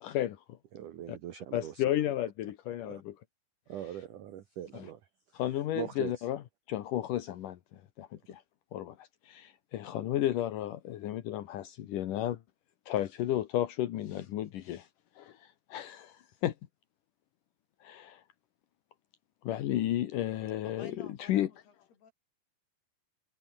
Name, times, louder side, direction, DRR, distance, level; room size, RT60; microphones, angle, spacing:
voice 1, 0.0-0.6 1.1-1.2 1.5-3.2 4.7-4.9 5.3-6.4 6.7-8.4 8.7-12.4 12.9-14.9 15.2-16.5 17.8-18.2 19.4-21.5, left 12 dB, 75° left, 2.0 m, -33 dB
voice 2, 0.7-1.8 2.8-3.0 3.7-5.0 5.8-6.1, right 11 dB, 70° right, 1.9 m, -41 dB
voice 3, 20.8-22.1, left 6 dB, 55° left, 6.2 m, -52 dB
omnidirectional pair, 5.6 m